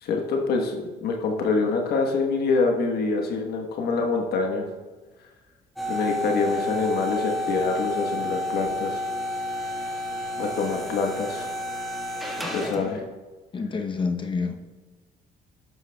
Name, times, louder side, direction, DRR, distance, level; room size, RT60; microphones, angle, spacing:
voice 1, 0.0-4.6 5.9-9.0 10.4-11.5 12.4-13.0, left 4 dB, 70° left, 2 dB, 1.1 m, -25 dB
sound 1, 5.8-13.0, left 1 dB, ahead, 1.4 m, -30 dB
voice 2, 12.4-13.0 13.5-14.6, left 4 dB, 30° left, 4 dB, 0.7 m, -29 dB
11.5 x 7.9 x 2.2 m, 1.3 s
cardioid pair, 110°, 17 cm